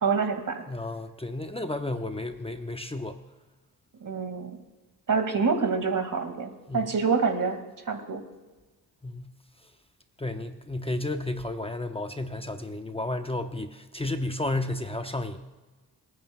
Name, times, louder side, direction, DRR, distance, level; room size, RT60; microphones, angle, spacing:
voice 1, 0.0-0.6 4.0-4.5 5.1-7.6 7.9-8.2, right 5 dB, 50° right, 7 dB, 2.1 m, -26 dB
voice 2, 0.7-3.2 6.7-6.9 9.0-9.3 10.2-15.4, left 2 dB, 15° left, 6 dB, 0.9 m, -32 dB
26.5 x 9.5 x 2.3 m, 1.2 s
cardioid pair, 60°, 40 cm